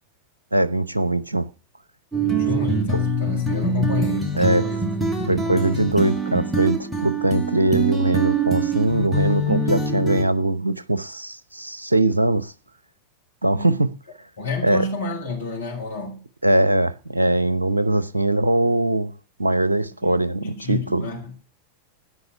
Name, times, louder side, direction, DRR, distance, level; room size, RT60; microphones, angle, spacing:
voice 1, 0.5-1.5 4.4-4.6 5.3-12.5 13.4-13.9 14.6-14.8 16.4-19.1 19.4-21.1, right 1 dB, 85° right, 0.7 m, -21 dB
sound 1, 2.1-10.2, right 2 dB, 5° right, 2.6 m, -24 dB
voice 2, 2.2-4.8 5.2-5.6 13.5-13.9 14.4-16.2 20.0-20.1 20.4-21.3, left 3 dB, 65° left, 7.2 m, -30 dB
13.0 x 9.8 x 6.9 m
figure-of-eight pair, 90°, 0 cm